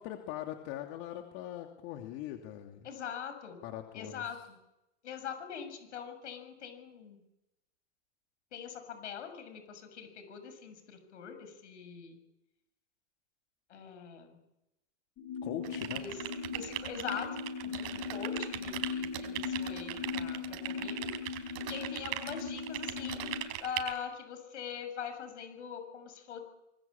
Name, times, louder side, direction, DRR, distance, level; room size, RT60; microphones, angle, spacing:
voice 1, 0.0-2.9 3.6-4.4 15.4-16.0, left 12 dB, 55° left, 3 dB, 2.8 m, -41 dB
voice 2, 2.8-3.6 3.9-4.6 5.0-7.2 8.5-12.2 13.7-14.4 15.9-16.2 16.5-21.1 21.4-26.4, left 7 dB, 85° left, 8 dB, 6.9 m, -43 dB
sound 1, 15.2-23.4, left 5 dB, 35° left, 3.3 m, -39 dB
sound 2, 15.6-24.0, right 14 dB, 60° right, 4.1 m, -39 dB
25.5 x 21.0 x 8.8 m, 0.93 s
supercardioid pair, 125°, 34 cm